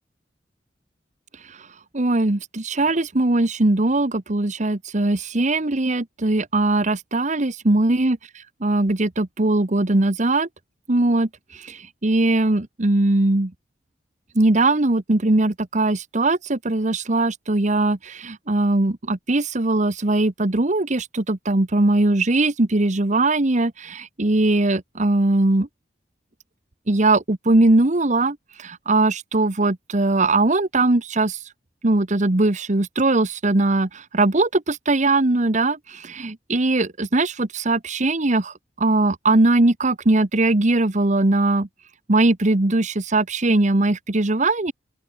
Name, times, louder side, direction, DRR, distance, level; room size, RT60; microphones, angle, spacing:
voice 1, 1.9-8.2 8.6-10.5 10.9-11.3 11.6-13.5 14.3-25.7 26.9-31.4 31.8-41.7 42.1-44.7, right 2 dB, 45° right, 1.2 m, -20 dB
open air
head